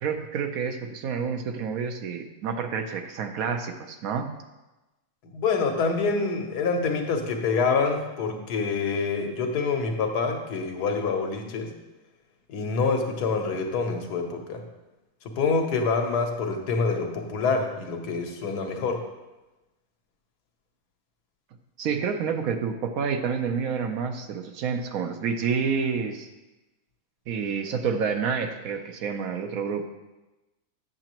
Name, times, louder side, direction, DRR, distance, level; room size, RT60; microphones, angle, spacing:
voice 1, 0.0-4.3 21.8-26.3 27.3-29.9, right 6 dB, 70° right, 6 dB, 1.0 m, -29 dB
voice 2, 5.3-11.7 12.5-14.6 15.2-19.0, left 4 dB, 90° left, 3 dB, 1.4 m, -26 dB
7.6 x 7.5 x 3.0 m, 1.0 s
omnidirectional pair, 1.7 m